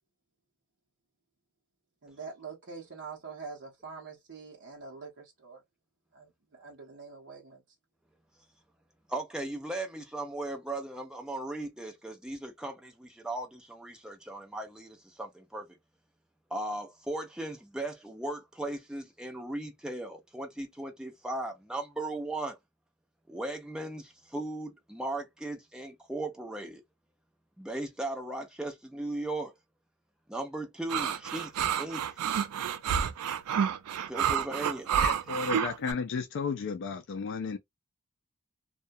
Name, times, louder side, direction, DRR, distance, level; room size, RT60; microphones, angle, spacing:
voice 1, 2.0-5.6 6.1-7.6, right 5 dB, 55° right, 0.8 m, -45 dB
voice 2, 9.1-15.7 16.5-22.6 23.3-26.8 27.6-29.5 30.3-32.1 34.1-34.9, right 2 dB, 5° right, 0.5 m, -37 dB
sound 1, 30.9-35.9, right 8 dB, 90° right, 0.4 m, -29 dB
voice 3, 35.0-37.6, left 5 dB, 55° left, 0.3 m, -33 dB
2.2 x 2.2 x 2.5 m
head